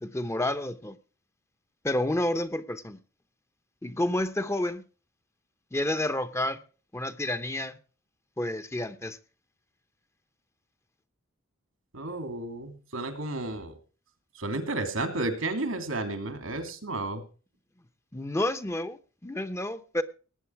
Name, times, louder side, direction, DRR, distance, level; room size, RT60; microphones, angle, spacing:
voice 1, 0.0-1.0 1.8-3.0 3.8-4.8 5.7-6.6 6.9-7.8 8.4-9.2 18.1-20.0, left 1 dB, 15° left, 0.8 m, -30 dB
voice 2, 11.9-13.7 14.4-17.2, right 2 dB, 90° right, 2.8 m, -32 dB
18.5 x 8.6 x 4.6 m
head